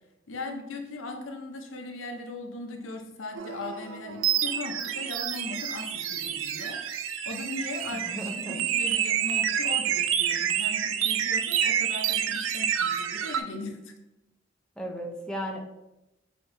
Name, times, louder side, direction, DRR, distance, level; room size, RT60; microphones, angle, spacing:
voice 1, 0.3-6.8 7.3-13.9, left 2 dB, 85° left, 4 dB, 0.6 m, -38 dB
sound 1, 3.3-13.4, right 9 dB, 80° right, 0.3 m, -28 dB
voice 2, 7.9-8.6 14.8-15.6, equal, 5° left, 0 dB, 0.5 m, -35 dB
5.8 x 2.9 x 2.6 m, 0.94 s
head